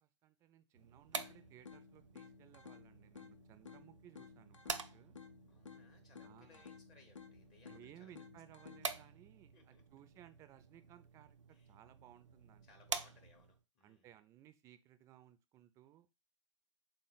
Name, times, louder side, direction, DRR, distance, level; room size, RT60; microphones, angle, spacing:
voice 1, 0.0-5.2 6.2-6.6 7.7-11.4 11.7-12.7 13.8-16.1, right 12 dB, 20° right, 11 dB, 0.3 m, -61 dB
sound 1, 0.7-13.6, right 5 dB, 85° right, 0.4 m, -49 dB
sound 2, 1.2-9.2, left 6 dB, 85° left, 0.5 m, -57 dB
voice 2, 5.5-8.2 8.5-8.6 9.5-9.8 11.5-11.7 12.6-14.1, left 4 dB, 25° left, 3 dB, 0.6 m, -67 dB
3.7 x 2.1 x 3.8 m, 0.26 s
figure-of-eight pair, 115°, 15 cm